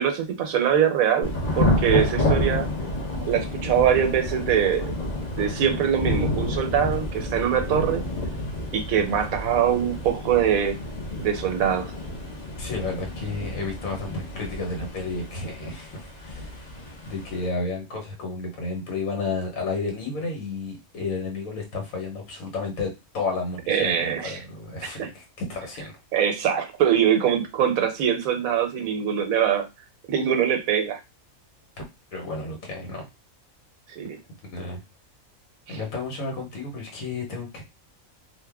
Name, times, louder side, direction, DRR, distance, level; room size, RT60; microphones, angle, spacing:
voice 1, 0.0-2.7 3.3-4.9 5.3-8.0 8.7-10.8 11.2-11.9 23.7-24.4 25.0-25.1 26.1-29.6 30.1-31.0 33.9-34.2 35.7-35.8, right 9 dB, 80° right, 6 dB, 1.1 m, -23 dB
Thunder / Rain, 1.2-17.5, left 1 dB, 35° left, 0.8 m, -29 dB
voice 2, 12.6-16.7 17.0-25.9 32.1-33.0 34.5-34.8 35.7-37.6, left 3 dB, 75° left, 1 dB, 1.4 m, -32 dB
2.9 x 2.1 x 3.4 m, 0.24 s
omnidirectional pair, 1.4 m